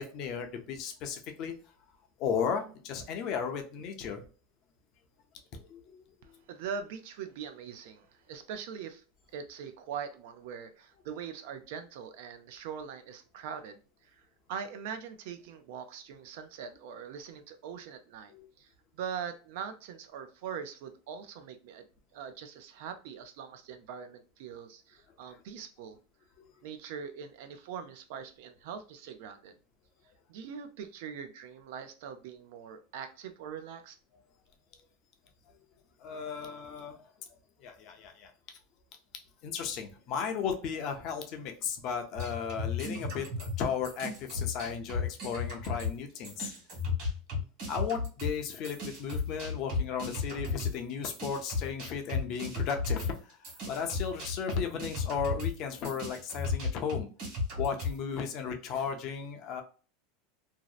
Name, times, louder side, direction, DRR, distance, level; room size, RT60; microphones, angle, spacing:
voice 1, 0.0-1.5 2.2-4.2 5.6-6.0 18.3-18.5 26.4-26.5 36.0-37.1 37.6-38.3 39.4-46.5 47.7-57.1 57.6-59.6, left 6 dB, 40° left, 4 dB, 0.5 m, -35 dB
voice 2, 6.2-9.0 9.3-14.1 14.5-18.7 18.9-21.9 22.1-26.0 26.6-29.5 30.3-34.0, right 7 dB, 60° right, 8 dB, 0.4 m, -42 dB
sound 1, 42.2-46.0 46.2-58.0, left 4 dB, 45° right, 1.4 m, -34 dB
2.7 x 2.0 x 2.3 m, 0.37 s
supercardioid pair, 165°, 0 cm